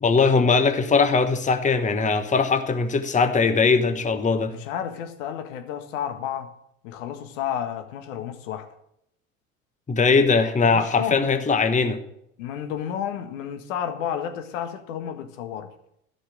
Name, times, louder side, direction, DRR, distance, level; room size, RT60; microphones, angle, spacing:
voice 1, 0.0-4.5 9.9-12.0, left 4 dB, 15° left, 1.2 m, -20 dB
voice 2, 4.5-6.5 6.8-8.7 10.7-11.4 12.4-15.7, left 9 dB, 65° left, 1.8 m, -31 dB
13.0 x 6.4 x 7.6 m
figure-of-eight pair, 75°, 42 cm